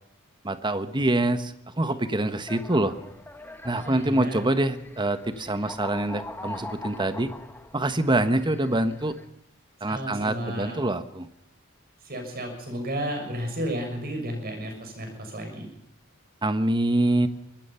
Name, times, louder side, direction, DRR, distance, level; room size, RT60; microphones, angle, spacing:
voice 1, 0.4-2.9 3.6-7.3 7.7-9.1 9.8-11.3 16.4-17.3, right 1 dB, 20° right, 11 dB, 1.3 m, -25 dB
sound 1, 2.4-9.2, left 2 dB, 10° left, 1.5 m, -42 dB
voice 2, 3.8-4.5 5.6-5.7 9.9-10.8 12.0-15.7, equal, 45° right, 4 dB, 6.7 m, -33 dB
24.0 x 19.5 x 5.8 m, 0.81 s
head